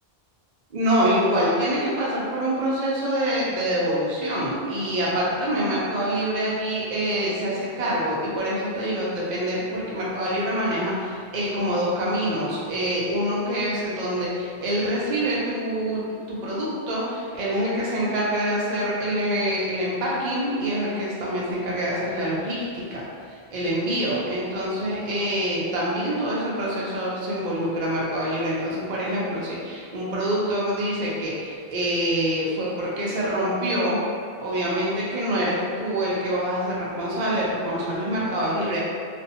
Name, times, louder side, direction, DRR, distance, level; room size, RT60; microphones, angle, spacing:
voice 1, 0.7-34.0 34.4-38.8, equal, 55° right, -6 dB, 0.5 m, -26 dB
2.4 x 2.1 x 2.7 m, 2.1 s
omnidirectional pair, 1.1 m